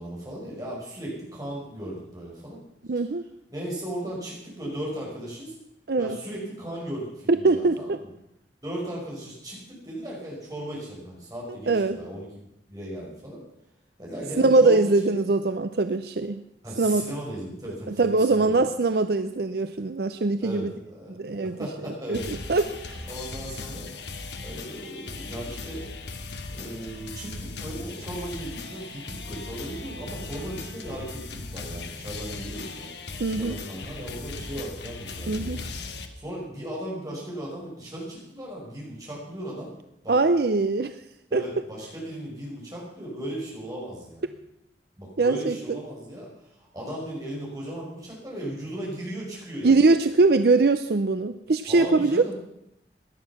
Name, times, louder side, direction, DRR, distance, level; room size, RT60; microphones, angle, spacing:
voice 1, 0.0-2.6 3.5-5.6 6.0-8.1 8.6-12.3 12.7-13.4 14.0-15.2 16.6-18.7 20.4-21.2 21.4-22.3 23.1-23.9 24.4-25.8 26.5-35.6 36.1-39.7 40.0-40.2 41.3-44.3 45.0-49.8 51.7-52.3, right 1 dB, 20° right, -4 dB, 5.7 m, -36 dB
voice 2, 2.9-3.2 5.9-6.2 7.3-8.0 11.7-12.0 14.4-16.4 16.8-17.0 17.9-20.7 21.1-21.6 22.1-23.1 33.2-33.5 35.3-35.7 40.1-41.0 41.3-41.4 45.2-45.8 49.6-52.3, right 3 dB, 55° right, 10 dB, 0.5 m, -22 dB
sound 1, 22.1-36.1, left 3 dB, 70° left, 1.5 m, -38 dB
17.5 x 11.0 x 5.9 m, 0.82 s
head